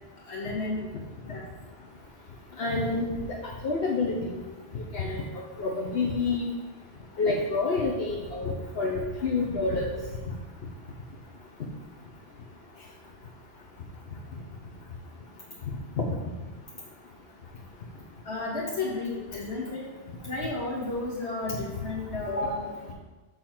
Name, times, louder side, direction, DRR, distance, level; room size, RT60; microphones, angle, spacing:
voice 1, 0.3-0.9 1.3-1.4 18.2-19.9 20.2-22.9, left 2 dB, 85° left, -5 dB, 2.4 m, -32 dB
voice 2, 2.6-3.4 3.6-4.4 4.7-5.2 5.6-6.5 7.2-9.9, left 3 dB, 70° left, -4 dB, 1.2 m, -28 dB
6.7 x 3.9 x 5.8 m, 1.2 s
omnidirectional pair, 1.1 m